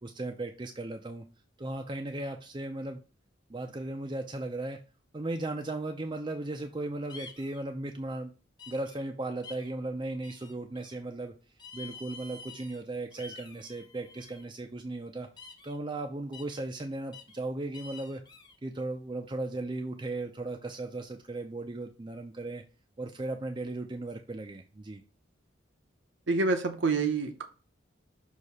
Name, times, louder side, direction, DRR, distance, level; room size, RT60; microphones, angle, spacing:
voice 1, 0.0-1.2 1.6-3.0 3.5-4.8 5.1-8.3 8.7-11.3 11.7-15.3 15.6-18.2 18.6-22.6 23.0-25.0, right 2 dB, 25° right, 4 dB, 0.5 m, -36 dB
sound 1, 7.1-7.6 8.6-9.0 9.4-9.7 10.2-11.0 11.6-12.8 13.1-14.4 15.4-15.8 16.3-16.6 17.1-17.4 17.7-18.5, left 4 dB, 20° left, 0.7 m, -49 dB
voice 2, 26.3-27.4, right 3 dB, 75° right, 6 dB, 0.8 m, -27 dB
6.4 x 2.8 x 5.4 m, 0.33 s
head